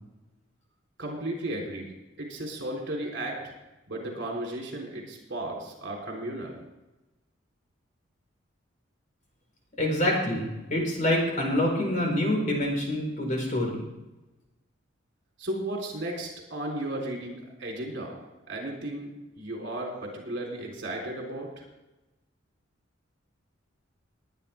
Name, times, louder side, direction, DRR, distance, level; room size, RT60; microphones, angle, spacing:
voice 1, 1.0-1.9 2.2-3.5 3.9-6.6 15.4-18.2 18.5-21.6, right 1 dB, 60° right, 0 dB, 3.8 m, -34 dB
voice 2, 9.8-13.8, left 1 dB, 40° left, 0 dB, 4.4 m, -26 dB
20.0 x 9.8 x 3.6 m, 1.0 s
head